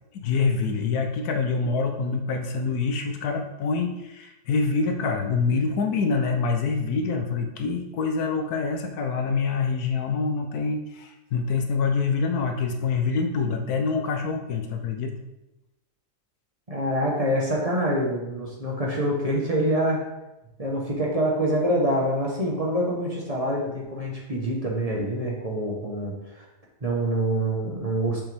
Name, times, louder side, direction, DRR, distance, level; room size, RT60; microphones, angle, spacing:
voice 1, 0.1-15.1, left 4 dB, 75° left, 5 dB, 1.2 m, -26 dB
voice 2, 16.7-20.0 20.6-26.4 26.8-28.2, right 1 dB, 25° right, -2 dB, 1.1 m, -26 dB
7.0 x 5.6 x 3.5 m, 0.97 s
omnidirectional pair, 1.7 m